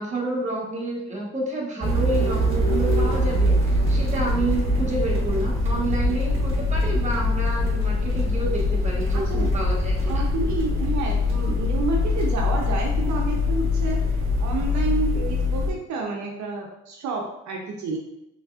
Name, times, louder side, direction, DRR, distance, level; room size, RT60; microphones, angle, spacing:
voice 1, 0.0-10.2, right 1 dB, 25° right, -3 dB, 1.2 m, -29 dB
sound 1, 1.8-15.7, left 2 dB, 45° right, 1.0 m, -23 dB
voice 2, 9.1-9.5 10.0-14.0 14.4-18.0, right 4 dB, 70° right, 0 dB, 0.6 m, -29 dB
4.0 x 3.1 x 2.4 m, 0.87 s
cardioid pair, 90°, 30 cm